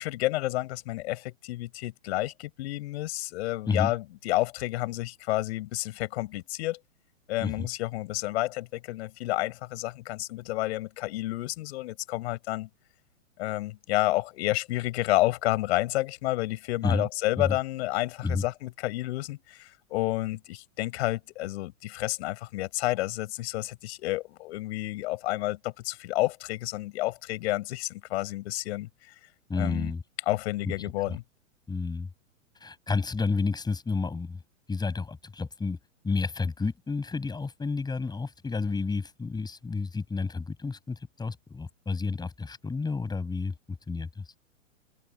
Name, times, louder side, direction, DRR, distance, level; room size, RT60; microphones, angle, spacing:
voice 1, 0.0-6.8 7.3-12.7 13.4-29.1 29.6-29.9 30.3-31.2, left 17 dB, 55° left, 6.2 m, -30 dB
voice 2, 29.5-30.0 30.6-30.7 31.1-31.2 31.7-32.1 32.6-34.4 34.7-35.8 36.0-44.2, left 4 dB, 10° left, 7.1 m, -30 dB
open air
hypercardioid pair, 115°, 39 cm